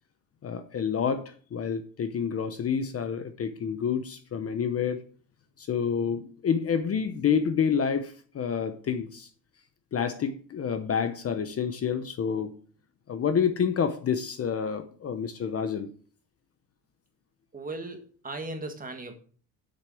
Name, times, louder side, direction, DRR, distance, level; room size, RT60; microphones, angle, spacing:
voice 1, 0.4-5.0 5.6-9.3 9.9-12.5 13.1-15.9, left 7 dB, 35° left, 9 dB, 0.9 m, -28 dB
voice 2, 17.5-19.2, right 2 dB, 20° right, 6 dB, 1.6 m, -37 dB
8.3 x 6.6 x 7.6 m, 0.43 s
cardioid pair, 170°, 43 cm